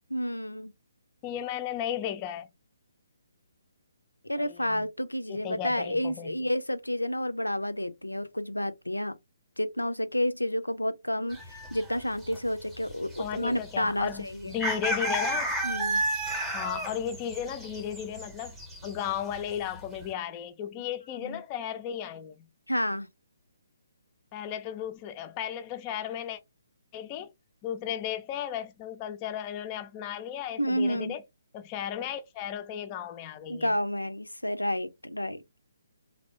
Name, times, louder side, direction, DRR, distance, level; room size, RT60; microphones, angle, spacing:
voice 1, 0.1-0.7 4.2-9.2 9.6-14.5 15.6-16.0 21.1-21.4 22.7-23.1 30.6-31.2 33.5-35.4, left 1 dB, 85° left, 0.5 m, -30 dB
voice 2, 1.2-2.5 4.4-4.9 5.3-6.3 13.2-15.5 16.5-18.6 18.8-22.5 24.3-26.4 26.9-27.3 27.6-31.2 31.5-33.7, left 9 dB, 25° left, 0.4 m, -35 dB
sound 1, 11.3-12.0 12.2-12.4 12.7-13.3 13.6-13.7 14.5-18.9 19.2-19.4 19.7-20.0, right 1 dB, 5° right, 0.8 m, -32 dB
3.3 x 2.1 x 2.8 m
figure-of-eight pair, 135°, 0 cm